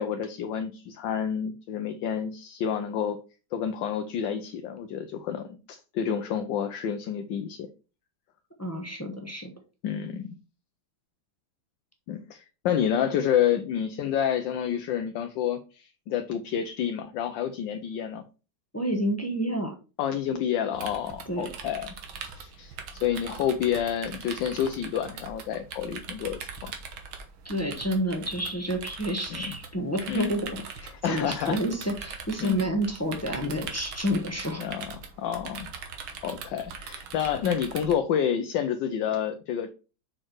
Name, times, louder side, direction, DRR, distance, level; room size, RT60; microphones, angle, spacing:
voice 1, 0.0-3.2 3.5-7.7 9.8-10.3 12.1-18.2 20.0-21.9 22.2-22.8 23.0-26.7 29.3-29.5 30.1-30.3 31.0-31.6 32.4-32.6 34.6-35.7 36.2-39.7, left 9 dB, 75° left, 7 dB, 1.3 m, -29 dB
voice 2, 8.6-9.5 18.7-19.8 21.2-21.5 27.4-34.6, equal, 10° left, 2 dB, 0.8 m, -29 dB
sound 1, 20.7-37.9, right 5 dB, 85° right, 1.9 m, -41 dB
6.2 x 4.3 x 4.6 m, 0.33 s
omnidirectional pair, 2.1 m